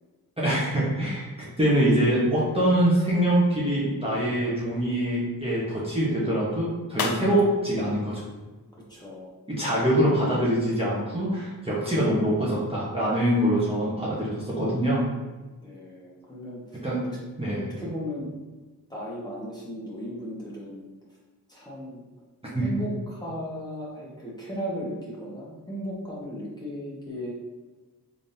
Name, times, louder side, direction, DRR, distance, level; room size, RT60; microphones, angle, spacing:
voice 1, 0.4-8.2 9.5-15.0 16.8-17.0 17.4-17.7 22.5-22.7, right 1 dB, 15° right, -8 dB, 1.1 m, -24 dB
sound 1, 6.8-9.3, left 5 dB, 65° left, 0.5 m, -40 dB
voice 2, 8.9-9.4 15.6-17.2 17.8-18.3 18.9-20.9 21.5-22.0 22.6-27.3, equal, 10° left, -6 dB, 1.4 m, -36 dB
3.8 x 3.4 x 2.7 m, 1.2 s
cardioid pair, 55°, 38 cm